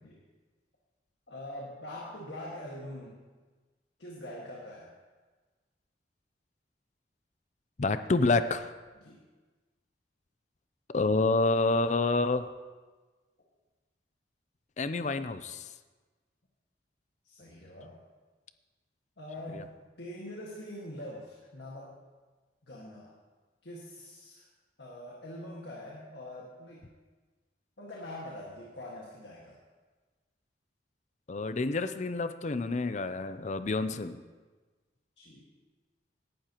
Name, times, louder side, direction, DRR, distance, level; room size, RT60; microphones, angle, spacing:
voice 1, 1.3-3.2 4.0-4.9 9.0-9.2 17.2-18.0 19.2-22.0 22.7-23.1 23.6-24.5 24.8-26.9 27.8-29.6 35.2-35.5, left 1 dB, 75° left, -3 dB, 1.8 m, -44 dB
voice 2, 7.8-8.7 10.9-12.5 14.8-15.7 19.5-19.6 31.3-34.2, left 3 dB, 40° left, 11 dB, 0.5 m, -28 dB
17.5 x 11.5 x 3.0 m, 1.3 s
head